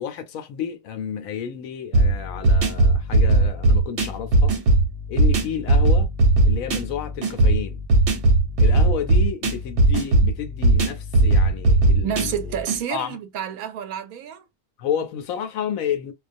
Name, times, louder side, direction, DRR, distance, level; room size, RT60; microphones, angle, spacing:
voice 1, 0.0-4.5 5.1-6.1 6.4-7.8 8.6-12.5 12.9-13.2 14.8-16.1, left 8 dB, 75° left, 1.0 m, -30 dB
sound 1, 1.9-12.8, right 2 dB, 55° right, 1.0 m, -18 dB
voice 2, 12.0-14.4, right 9 dB, 85° right, 1.1 m, -29 dB
2.3 x 2.2 x 2.5 m
omnidirectional pair, 1.5 m